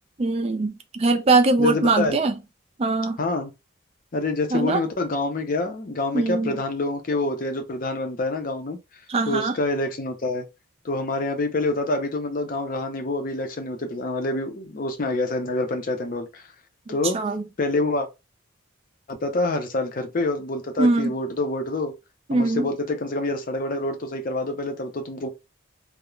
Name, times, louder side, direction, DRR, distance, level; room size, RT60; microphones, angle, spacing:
voice 1, 0.2-2.4 2.8-3.2 4.5-4.8 6.1-6.5 9.1-9.5 16.9-17.4 20.8-21.1 22.3-22.7, right 3 dB, 30° right, 0.3 m, -22 dB
voice 2, 1.6-2.2 3.2-3.5 4.1-8.8 9.3-10.4 10.8-16.4 16.9-17.2 17.6-18.1 19.1-21.9 22.3-25.3, left 2 dB, 40° left, 0.5 m, -26 dB
2.4 x 2.0 x 2.9 m
head